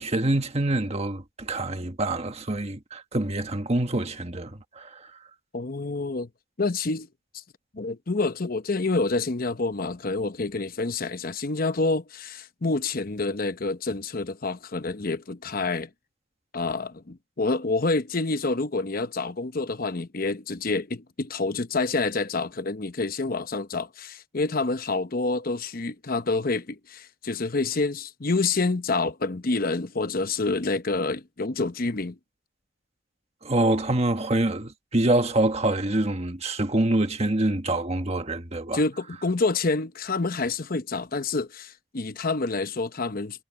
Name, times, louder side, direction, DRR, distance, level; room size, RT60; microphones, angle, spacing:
voice 1, 0.0-5.1 33.4-38.8, right 1 dB, 35° right, 1.4 m, -26 dB
voice 2, 5.5-6.3 6.6-7.1 7.3-7.4 7.7-15.9 16.5-32.2 38.7-43.4, left 3 dB, 45° left, 0.9 m, -28 dB
head